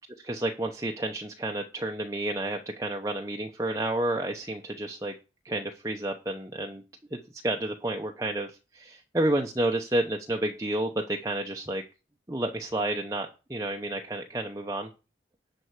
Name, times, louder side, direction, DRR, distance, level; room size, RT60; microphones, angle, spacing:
voice 1, 0.2-5.1 5.4-6.8 7.1-11.8 12.3-14.9, right 1 dB, 15° right, 2 dB, 0.8 m, -30 dB
11.0 x 4.5 x 8.1 m, 0.30 s
head